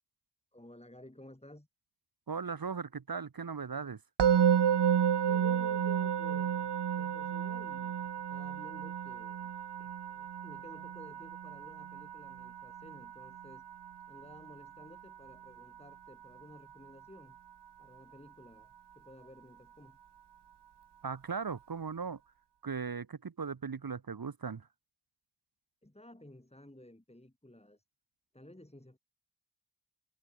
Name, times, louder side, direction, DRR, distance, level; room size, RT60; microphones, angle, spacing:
voice 1, 0.5-1.7 5.2-9.5 9.8-13.6 14.1-17.4 17.8-20.0 25.8-27.8 28.3-29.0, left 1 dB, 15° left, 5.5 m, -54 dB
voice 2, 2.3-4.0 21.0-22.2 22.6-24.7, right 5 dB, 55° right, 1.1 m, -38 dB
Musical instrument, 4.2-15.3, right 9 dB, 70° right, 0.8 m, -32 dB
cardioid pair, 40°, 42 cm